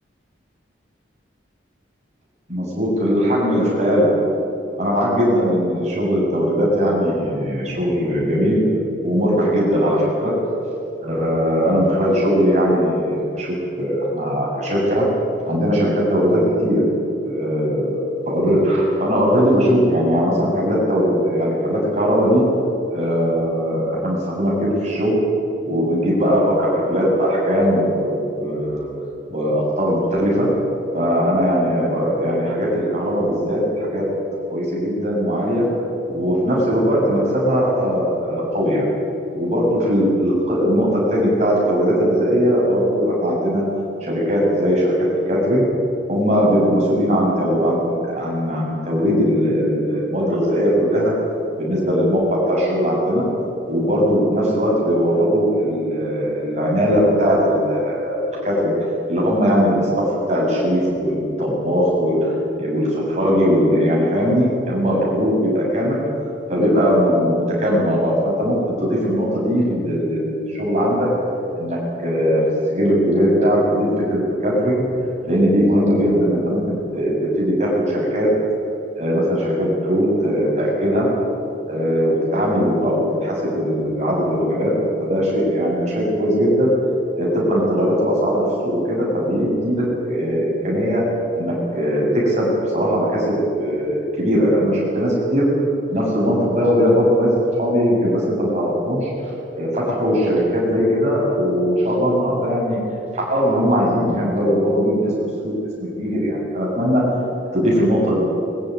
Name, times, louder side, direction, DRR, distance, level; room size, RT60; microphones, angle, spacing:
voice 1, 2.5-4.1 4.8-8.6 9.0-10.3 11.0-13.5 13.8-15.1 15.5-16.8 17.2-22.4 22.9-25.1 25.6-28.9 29.3-30.5 30.9-34.1 34.5-35.7 36.1-38.9 39.3-43.6 44.0-44.9 45.3-45.7 46.1-51.1 51.6-53.2 53.7-58.7 59.1-66.0 66.5-71.1 71.6-72.4 72.7-74.8 75.3-76.6 76.9-77.1 77.4-78.3 79.0-81.1 81.7-84.7 85.0-86.7 87.1-91.0 91.4-92.5 92.7-93.3 93.6-95.5 95.9-97.3 97.6-99.1 99.5-102.8 103.1-105.1 105.4-105.5 105.8-107.0 107.5-108.2, equal, 35° right, -4 dB, 7.6 m, -19 dB
22.0 x 14.0 x 9.9 m, 2.7 s
head